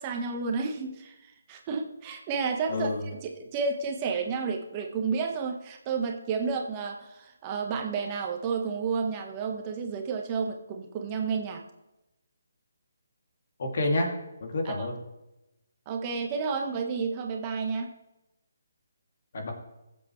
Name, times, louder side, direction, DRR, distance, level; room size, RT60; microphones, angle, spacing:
voice 1, 0.0-11.6 14.6-14.9 15.9-17.9, right 5 dB, 25° right, 3 dB, 1.3 m, -31 dB
voice 2, 2.7-3.0 13.6-14.1 14.4-15.0 19.3-19.5, left 2 dB, 50° left, 2 dB, 2.7 m, -28 dB
20.5 x 7.7 x 3.3 m, 0.95 s
figure-of-eight pair, 145°, 0 cm